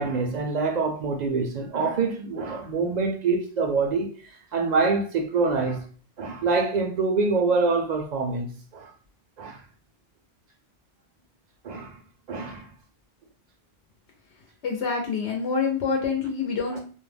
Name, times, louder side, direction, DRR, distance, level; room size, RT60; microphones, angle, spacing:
voice 1, 0.0-4.1 4.5-5.8 6.2-8.9 9.4-9.6 11.6-12.0 12.3-12.6 16.7-16.8, right 4 dB, 60° right, 0.4 m, -25 dB
voice 2, 14.6-16.8, left 5 dB, 80° left, 0.9 m, -26 dB
2.4 x 2.0 x 3.2 m
omnidirectional pair, 1.1 m